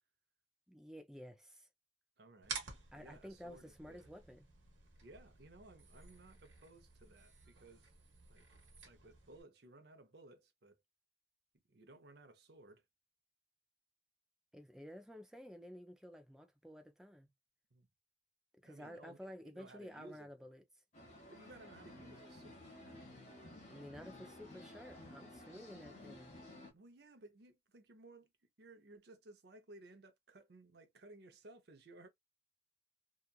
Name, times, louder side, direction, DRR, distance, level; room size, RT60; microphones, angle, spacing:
voice 1, 0.7-1.7 2.9-4.5 14.5-17.3 18.6-20.6 23.6-26.4, equal, 5° right, 0.4 m, -52 dB
voice 2, 2.2-2.6 2.9-4.1 5.0-7.9 8.3-8.4 8.8-10.8 11.7-12.8 17.7-17.9 18.6-20.3 21.3-23.1 26.7-28.3 28.6-32.1, right 2 dB, 60° right, 0.7 m, -59 dB
sound 1, 2.4-9.4, right 5 dB, 85° right, 1.1 m, -52 dB
sound 2, 20.9-26.7, left 1 dB, 40° left, 1.1 m, -54 dB
2.9 x 2.4 x 2.3 m
head